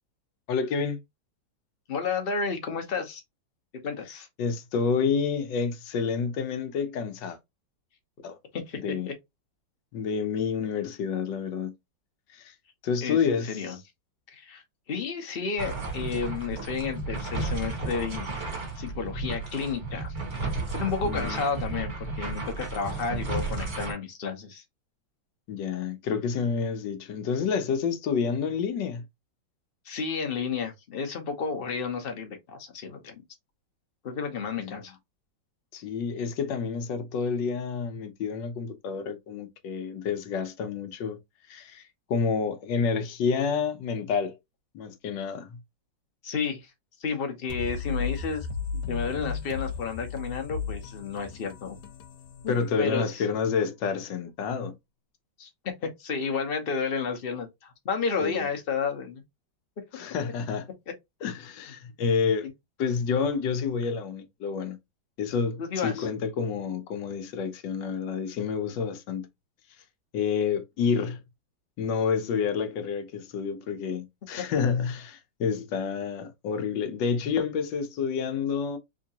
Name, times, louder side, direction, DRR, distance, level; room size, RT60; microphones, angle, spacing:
voice 1, 0.5-1.0 4.4-7.4 8.2-8.4 8.8-9.1 9.9-11.7 12.3-12.5 12.8-13.7 21.0-21.4 25.5-29.0 34.6-34.8 35.7-41.2 41.5-41.8 42.1-44.4 44.7-45.6 52.5-54.7 58.2-58.5 59.9-60.7 61.2-62.5 62.8-64.8 65.2-69.3 70.1-71.2 71.8-78.8, left 6 dB, 75° left, 1.3 m, -29 dB
voice 2, 1.9-3.2 3.8-4.3 8.5-9.1 13.0-13.8 14.3-18.3 18.7-20.1 20.7-24.6 29.8-33.2 34.0-35.0 46.2-46.7 47.0-48.5 48.7-51.8 52.4-53.3 55.4-59.2 60.9-61.0 65.6-66.1, left 5 dB, 45° left, 0.7 m, -31 dB
sound 1, 15.6-23.9, right 3 dB, 30° right, 1.2 m, -33 dB
sound 2, 47.5-53.1, left 5 dB, 90° left, 1.4 m, -35 dB
3.6 x 2.9 x 2.8 m
omnidirectional pair, 2.1 m